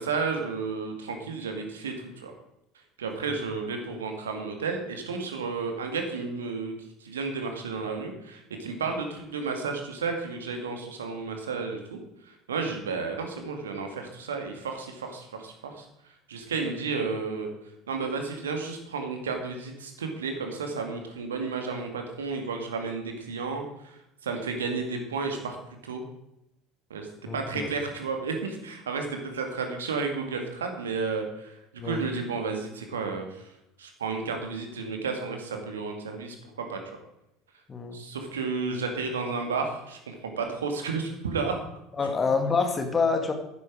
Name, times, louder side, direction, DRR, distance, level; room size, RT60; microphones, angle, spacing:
voice 1, 0.0-2.3 3.0-12.0 12.3-15.9 16.3-17.5 17.9-25.6 25.8-26.0 26.9-33.5 33.8-36.8 37.9-41.6 42.0-42.4, right 4 dB, 75° right, 4 dB, 2.1 m, -32 dB
voice 2, 27.3-27.7 31.8-32.0 37.7-38.0 42.0-43.3, left 4 dB, 25° left, 6 dB, 1.9 m, -27 dB
11.5 x 10.5 x 4.9 m, 0.84 s
figure-of-eight pair, 65°, 0 cm